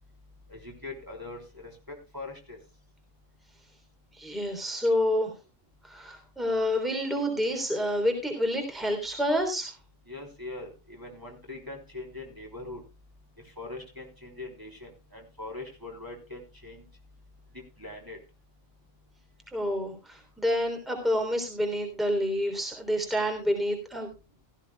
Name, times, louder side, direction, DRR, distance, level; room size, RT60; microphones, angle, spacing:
voice 1, 0.5-2.6 10.1-12.8 13.6-16.8 17.8-18.2, left 2 dB, 15° right, 0 dB, 3.4 m, -42 dB
voice 2, 4.1-5.3 5.9-9.7 19.5-24.1, equal, ahead, 4 dB, 3.2 m, -28 dB
16.5 x 15.0 x 2.3 m, 0.28 s
omnidirectional pair, 1.3 m